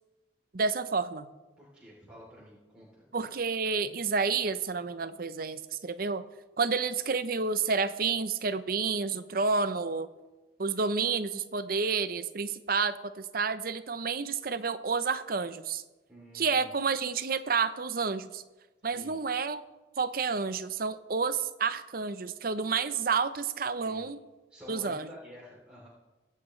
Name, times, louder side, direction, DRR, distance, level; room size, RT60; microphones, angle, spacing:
voice 1, 0.5-1.3 3.1-6.2 6.6-10.1 10.6-15.8 16.3-18.4 18.8-19.6 20.0-24.2 24.7-25.1, right 5 dB, 50° right, 12 dB, 0.7 m, -30 dB
voice 2, 1.6-3.0 16.1-16.7 18.8-19.2 23.8-24.1 24.5-25.9, equal, 5° right, -8 dB, 3.2 m, -50 dB
23.5 x 8.5 x 3.2 m, 1.2 s
head